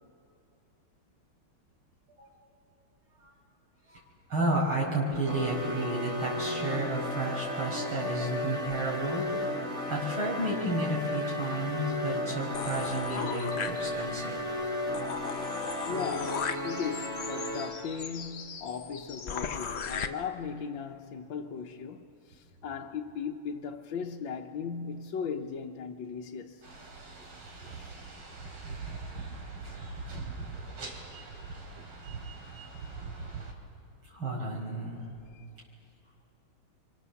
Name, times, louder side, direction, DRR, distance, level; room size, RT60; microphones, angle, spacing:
voice 1, 4.3-14.4 34.1-35.0, right 1 dB, 70° right, 6.0 m, -32 dB
sound 1, 5.3-17.9, left 1 dB, 15° right, 3.7 m, -34 dB
sound 2, 12.5-14.2 14.6-14.7 14.9-20.1, left 7 dB, 85° left, 0.5 m, -37 dB
voice 2, 15.9-26.6 35.3-35.4, left 6 dB, 65° left, 1.6 m, -37 dB
sound 3, 26.6-33.5, right 3 dB, 90° right, 4.0 m, -42 dB
29.0 x 25.0 x 7.0 m
omnidirectional pair, 2.3 m